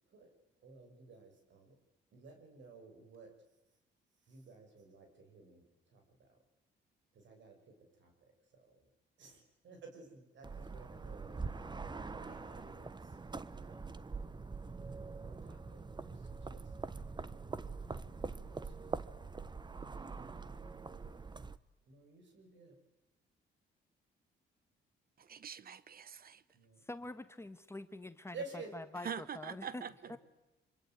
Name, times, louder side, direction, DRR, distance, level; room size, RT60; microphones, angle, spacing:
voice 1, 0.6-1.8 2.1-3.3 4.2-6.4 7.1-8.9 9.2-13.2 13.6-13.8 15.2-17.2 18.2-19.3 20.1-20.6 21.9-22.8 26.5-26.8 28.3-28.7 29.8-30.2, right 3 dB, 65° right, 6.8 m, -54 dB
sound 1, 10.4-21.6, right 4 dB, 20° right, 1.1 m, -44 dB
voice 2, 25.2-26.4 29.0-29.9, right 7 dB, 50° right, 1.1 m, -44 dB
voice 3, 26.8-28.3 28.7-29.8 30.1-30.2, left 2 dB, 15° left, 1.5 m, -45 dB
25.5 x 24.5 x 9.3 m
cardioid pair, 90°, 20 cm